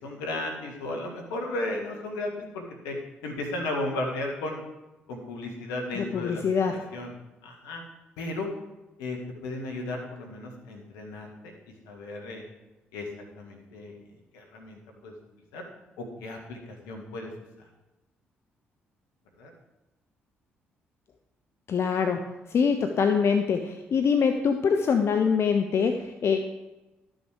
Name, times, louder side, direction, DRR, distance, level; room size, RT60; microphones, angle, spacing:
voice 1, 0.0-2.9 3.2-4.6 5.1-6.4 6.9-7.1 7.4-7.8 8.2-8.5 9.0-11.5 11.9-12.4 12.9-13.0 13.4-13.9 14.3-15.1 15.5-15.7 16.0-17.3 19.4-19.5, left 2 dB, 75° left, 1 dB, 1.7 m, -34 dB
voice 2, 5.9-6.8 21.7-22.2 22.5-26.4, left 6 dB, 50° left, 6 dB, 0.7 m, -24 dB
12.0 x 6.4 x 4.9 m, 1.0 s
hypercardioid pair, 45°, 6 cm